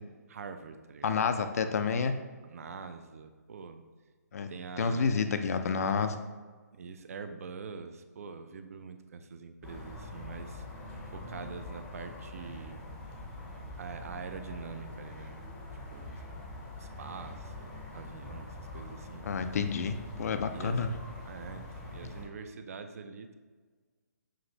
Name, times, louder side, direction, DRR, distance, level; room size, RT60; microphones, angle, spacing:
voice 1, 0.3-1.3 2.4-3.8 4.5-5.2 6.7-10.7 11.1-12.8 13.8-15.4 15.9-16.2 16.8-19.3 20.5-20.9 21.3-23.4, right 5 dB, 55° right, 8 dB, 0.4 m, -44 dB
voice 2, 1.0-2.1 4.3-4.5 4.8-6.2 19.2-20.9, left 5 dB, 60° left, 9 dB, 0.4 m, -29 dB
sound 1, 9.6-22.2, left 1 dB, 10° left, 0.5 m, -44 dB
6.0 x 2.5 x 2.8 m, 1.4 s
hypercardioid pair, 155°, 9 cm